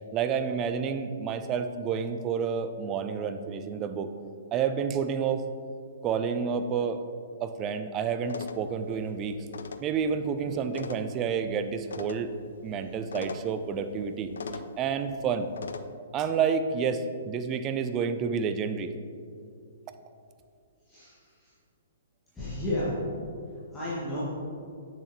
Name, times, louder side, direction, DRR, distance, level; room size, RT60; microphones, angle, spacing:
voice 1, 0.1-4.1 4.5-5.4 6.0-7.0 7.4-9.4 9.8-12.3 12.6-14.3 14.8-15.5 16.1-18.9, right 6 dB, 25° right, 9 dB, 0.4 m, -29 dB
sound 1, 8.3-15.9, left 4 dB, 60° left, 0.3 m, -43 dB
voice 2, 20.9-21.5 22.3-23.0 23.7-24.2, left 1 dB, 10° left, -11 dB, 1.7 m, -32 dB
7.8 x 6.6 x 3.0 m, 2.4 s
figure-of-eight pair, 120°, 0 cm